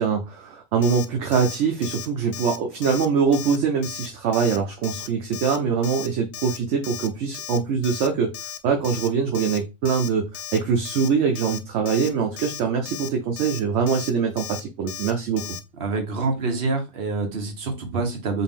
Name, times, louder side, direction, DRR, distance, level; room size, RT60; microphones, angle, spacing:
voice 1, 0.0-8.3 8.6-15.4, right 6 dB, 65° right, 3 dB, 0.8 m, -23 dB
Alarm, 0.8-1.1 1.3-1.6 1.8-2.1 2.3-2.6 2.8-3.1 3.3-3.6 3.8-4.1 4.3-4.6 4.8-5.1 5.3-5.6 5.8-6.1 6.3-6.6 6.8-7.1 7.3-7.6 7.8-8.1 8.3-8.6 8.8-9.1 9.3-9.6 9.8-10.1 10.3-10.6 10.8-11.1 11.3-11.6 11.9-12.1 12.4-12.6 12.9-13.1 13.4-13.6 13.9-14.1 14.4-14.6 14.9-15.1 15.4-15.6, left 10 dB, 90° left, 1.1 m, -35 dB
voice 2, 15.8-18.4, right 3 dB, 45° right, 3 dB, 1.1 m, -26 dB
4.0 x 2.5 x 3.5 m, 0.26 s
omnidirectional pair, 1.6 m